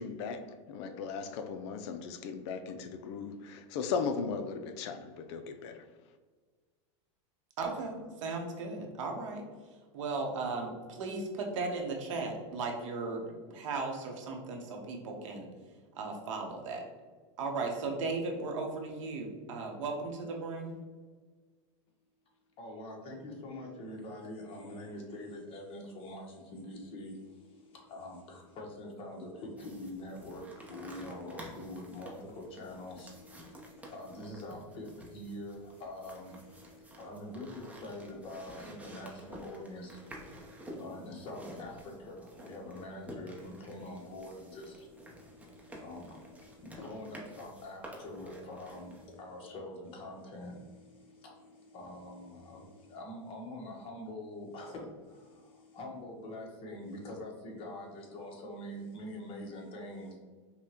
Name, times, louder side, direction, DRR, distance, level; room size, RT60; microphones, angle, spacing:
voice 1, 0.0-5.8, left 5 dB, 65° left, 0.4 m, -37 dB
voice 2, 7.6-9.4 9.9-15.5 15.9-16.8 17.4-20.8, right 3 dB, 80° right, 0.9 m, -36 dB
voice 3, 22.6-60.2, left 1 dB, 35° left, 1.0 m, -45 dB
sound 1, 29.6-49.1, right 1 dB, 10° right, 0.7 m, -51 dB
5.4 x 2.2 x 2.8 m
supercardioid pair, 125°, 16 cm